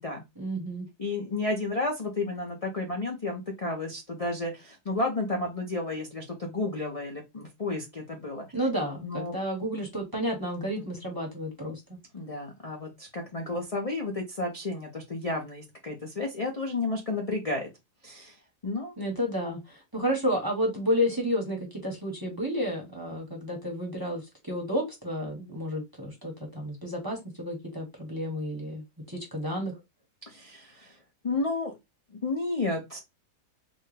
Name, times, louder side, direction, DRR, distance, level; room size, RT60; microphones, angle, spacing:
voice 1, 0.4-0.9 8.5-11.8 19.0-29.7, equal, 15° right, 0 dB, 0.9 m, -31 dB
voice 2, 1.0-8.5 9.0-9.3 10.6-10.9 12.1-17.7 18.0-18.9 30.3-31.0 31.2-31.7 32.1-33.0, left 2 dB, 35° left, 0 dB, 0.6 m, -32 dB
4.3 x 2.2 x 3.2 m, 0.21 s
omnidirectional pair, 1.7 m